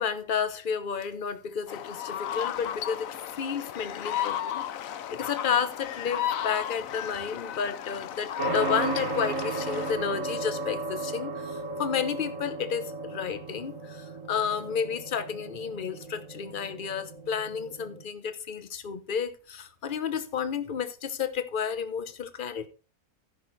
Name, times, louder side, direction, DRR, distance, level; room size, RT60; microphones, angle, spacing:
voice 1, 0.0-3.1 3.4-22.7, left 7 dB, 40° left, 0.9 m, -31 dB
sound 1, 1.7-9.9, left 10 dB, 65° left, 1.0 m, -34 dB
sound 2, 8.4-18.0, right 3 dB, 50° right, 2.1 m, -35 dB
14.0 x 6.4 x 4.1 m
omnidirectional pair, 1.7 m